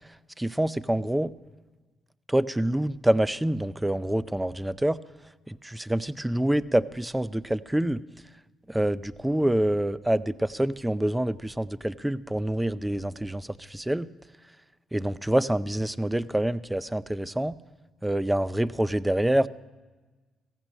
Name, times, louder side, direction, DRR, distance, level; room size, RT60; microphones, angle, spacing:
voice 1, 0.4-1.3 2.3-5.0 5.5-8.0 8.7-14.1 14.9-17.5 18.0-19.5, right 1 dB, 10° right, 16 dB, 0.5 m, -26 dB
16.5 x 15.0 x 5.4 m, 1.3 s
cardioid pair, 90°, 0 cm